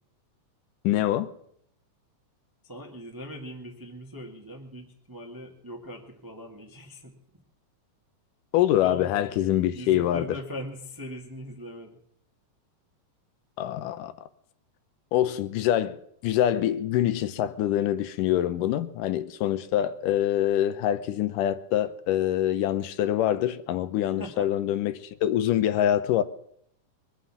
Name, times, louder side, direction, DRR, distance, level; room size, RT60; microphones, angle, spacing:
voice 1, 0.8-1.3 8.5-10.3 13.6-14.1 15.1-26.2, left 12 dB, 85° left, 2.4 m, -25 dB
voice 2, 2.6-7.2 8.8-12.0 24.2-24.5, equal, 10° right, 1.0 m, -41 dB
22.0 x 7.7 x 7.1 m
omnidirectional pair, 3.7 m